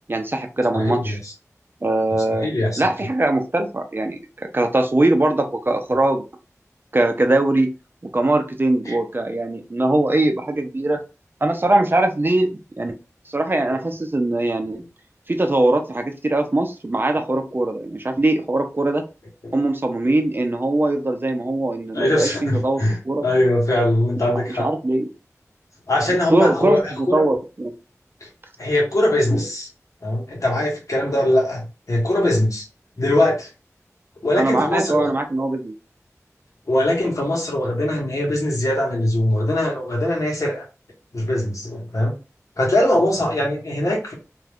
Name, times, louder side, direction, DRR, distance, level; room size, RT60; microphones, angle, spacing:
voice 1, 0.1-1.2 1.8-2.5 2.8-6.2 6.9-7.7 8.0-11.0 11.4-12.9 13.3-14.8 15.3-19.0 19.5-22.8 23.0-23.2 24.3-25.1 26.3-26.8 27.1-27.7 34.4-35.7, right 2 dB, 40° right, 5 dB, 0.5 m, -21 dB
voice 2, 0.7-1.3 2.4-2.8 8.9-9.0 13.7-13.8 19.4-19.5 21.9-24.7 25.9-27.2 28.6-29.7 30.0-32.6 33.0-33.5 34.2-35.1 36.7-40.6 41.1-42.1 42.6-44.1, left 1 dB, 70° left, -2 dB, 1.2 m, -21 dB
2.6 x 2.3 x 3.4 m, 0.31 s
wide cardioid pair, 55°, 6 cm